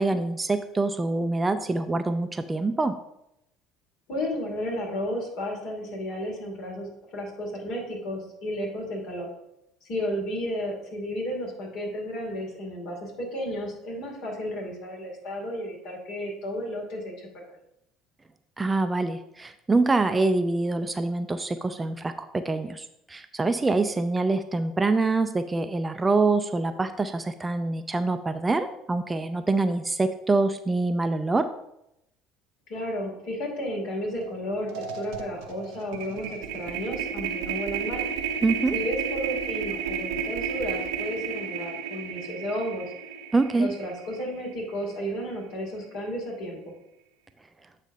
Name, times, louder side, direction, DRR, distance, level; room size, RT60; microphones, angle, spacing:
voice 1, 0.0-2.9 18.6-31.5 38.4-38.8 43.3-43.7, right 3 dB, 20° right, 9 dB, 0.5 m, -25 dB
voice 2, 4.1-9.3 9.8-17.6 32.7-38.0 38.7-42.9 43.6-46.7, equal, 60° left, -1 dB, 2.6 m, -33 dB
sound 1, 34.2-34.4 34.7-44.9, right 7 dB, 70° right, 0.7 m, -33 dB
8.1 x 3.2 x 5.3 m, 0.82 s
figure-of-eight pair, 60°, 0 cm